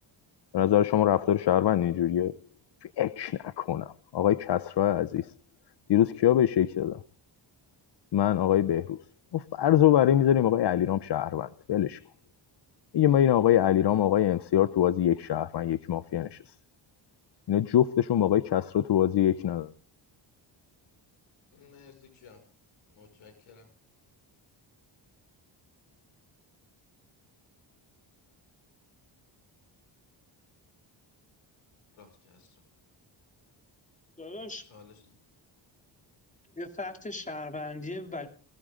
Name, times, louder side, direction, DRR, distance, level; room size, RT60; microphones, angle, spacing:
voice 1, 0.5-2.3 3.0-5.3 5.9-7.0 8.1-9.0 9.3-12.0 12.9-16.4 17.5-19.7, left 11 dB, 60° left, 0.8 m, -24 dB
voice 2, 21.5-22.4 22.9-23.7 31.9-32.6 34.7-35.2, left 5 dB, 90° left, 6.1 m, -55 dB
voice 3, 34.2-34.6 36.5-38.3, left 2 dB, 15° left, 3.1 m, -37 dB
22.0 x 16.0 x 3.8 m
cardioid pair, 105°, 47 cm